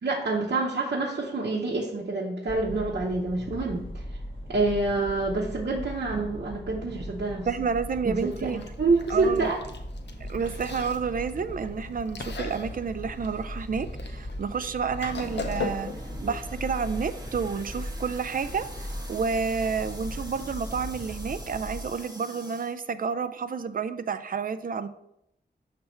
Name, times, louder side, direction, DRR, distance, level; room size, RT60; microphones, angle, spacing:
voice 1, 0.0-4.0 4.5-7.5 8.0-9.6, right 3 dB, 70° right, -5 dB, 0.9 m, -27 dB
sound 1, 2.5-21.9, equal, 30° left, 1.6 m, -38 dB
voice 2, 7.5-8.6 9.1-9.5 10.2-15.9 16.2-24.9, right 5 dB, 55° right, 11 dB, 0.4 m, -30 dB
Chewing mastication, 8.2-16.1, left 4 dB, 85° left, 0.6 m, -40 dB
sound 2, 15.1-22.8, right 1 dB, 20° right, 1.3 m, -45 dB
6.7 x 3.4 x 4.3 m, 0.79 s
wide cardioid pair, 95°, 17 cm